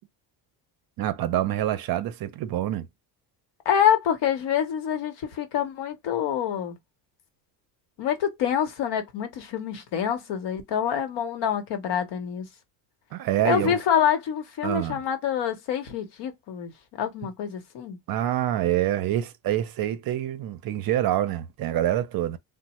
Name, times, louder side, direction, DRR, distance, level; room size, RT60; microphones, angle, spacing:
voice 1, 1.0-2.9 13.1-13.8 14.6-15.0 18.1-22.4, right 12 dB, 55° right, 0.5 m, -26 dB
voice 2, 3.6-6.8 8.0-12.5 13.4-16.7 17.0-18.0, left 9 dB, 70° left, 0.9 m, -26 dB
3.1 x 2.0 x 2.9 m
cardioid pair, 110°, 44 cm